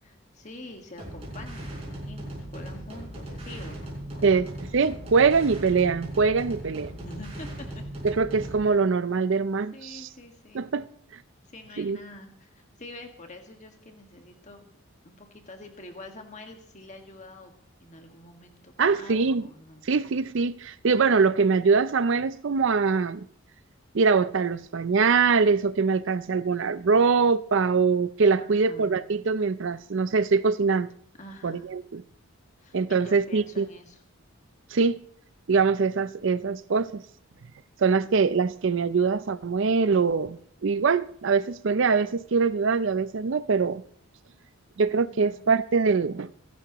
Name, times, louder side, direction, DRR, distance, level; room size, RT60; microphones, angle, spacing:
voice 1, 0.0-4.5 6.9-7.8 9.7-10.7 11.4-14.7 15.0-17.5 17.8-19.8 28.4-29.0 31.2-31.7 32.6-34.0 45.0-45.5, left 1 dB, 35° left, 1.7 m, -46 dB
sound 1, 1.0-8.7, right 1 dB, 30° right, 5.0 m, -38 dB
voice 2, 4.7-6.9 8.0-10.1 10.5-10.9 11.8-12.0 18.8-19.4 19.9-23.3 23.9-30.9 31.4-32.0 32.7-33.7 34.7-35.0 35.5-37.0 37.8-43.8 44.8-46.3, right 5 dB, 55° right, 0.5 m, -23 dB
26.0 x 11.5 x 3.0 m
head